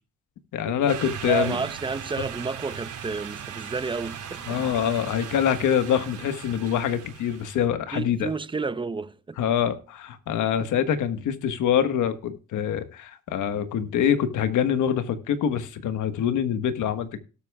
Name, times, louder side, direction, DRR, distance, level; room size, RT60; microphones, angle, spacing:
voice 1, 0.5-1.6 4.5-8.3 9.4-17.2, left 9 dB, 80° left, 1.4 m, -25 dB
sound 1, 0.9-7.6, right 8 dB, 85° right, 4.1 m, -38 dB
voice 2, 1.2-4.4 7.9-9.4, right 4 dB, 15° right, 0.7 m, -30 dB
sound 2, 3.5-4.9, equal, 10° left, 3.0 m, -47 dB
18.0 x 8.3 x 2.3 m
cardioid pair, 90°, 30 cm